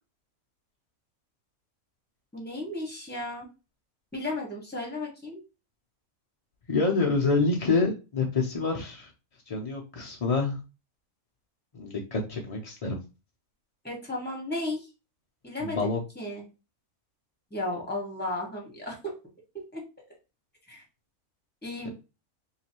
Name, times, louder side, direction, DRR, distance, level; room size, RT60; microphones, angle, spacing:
voice 1, 2.3-3.5 4.1-5.4 13.8-14.9 15.4-15.9 16.1-16.4 17.5-19.0 19.7-19.8 20.7-20.8 21.6-21.9, left 2 dB, 5° left, -2 dB, 1.3 m, -34 dB
voice 2, 6.7-9.1 9.5-10.6 11.7-13.0 15.6-16.0, left 3 dB, 65° left, -1 dB, 0.3 m, -27 dB
3.7 x 3.1 x 2.9 m, 0.29 s
omnidirectional pair, 1.5 m